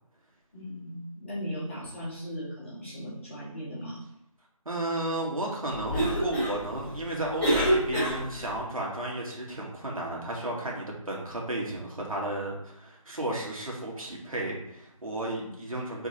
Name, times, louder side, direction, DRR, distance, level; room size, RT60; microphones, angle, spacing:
voice 1, 0.5-4.0 15.4-15.5, equal, 20° left, -10 dB, 2.4 m, -38 dB
voice 2, 4.7-16.1, right 1 dB, 70° right, -2 dB, 2.3 m, -33 dB
Cough, 5.7-8.6, right 1 dB, 5° left, 2.5 m, -28 dB
4.7 x 4.7 x 4.4 m, 0.79 s
figure-of-eight pair, 170°, 18 cm